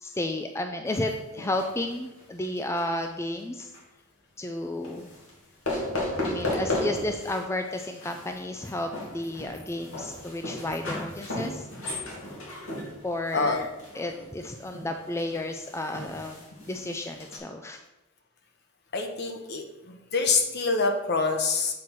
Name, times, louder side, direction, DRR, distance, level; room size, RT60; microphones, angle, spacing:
voice 1, 0.0-3.7 4.4-5.1 6.2-11.7 13.0-13.7 13.9-16.4 16.7-17.8, left 1 dB, 15° left, 5 dB, 0.4 m, -32 dB
sound 1, 0.9-3.1 3.4-3.8 4.8-5.3 5.6-7.4 7.7-17.4, left 1 dB, 90° left, 2.5 m, -35 dB
voice 2, 18.9-21.8, left 4 dB, 55° left, 4 dB, 1.1 m, -26 dB
7.6 x 4.6 x 5.7 m, 0.99 s
head